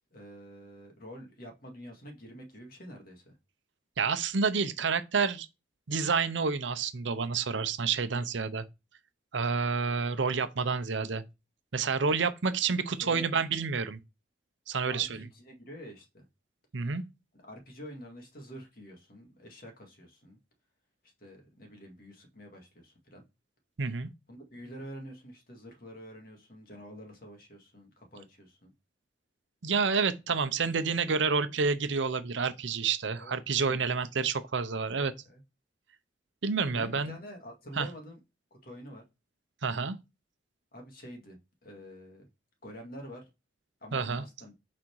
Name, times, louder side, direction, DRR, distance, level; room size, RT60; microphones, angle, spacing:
voice 1, 0.1-3.3 13.0-13.3 14.9-16.2 17.4-20.4 21.2-23.2 24.3-28.7 33.2-33.4 33.7-33.8 34.9-35.4 36.7-38.2 38.6-39.0 40.7-41.4 41.6-42.3 42.6-43.2 43.8-44.5, equal, 50° left, 2.0 m, -47 dB
voice 2, 4.0-5.5 5.9-8.6 9.3-11.2 11.7-14.0 14.7-15.2 16.7-17.0 23.8-24.1 29.6-35.1 36.4-37.1 37.8-37.9 39.6-40.0 43.9-44.2, right 5 dB, 80° right, 0.7 m, -29 dB
6.2 x 4.3 x 4.7 m
head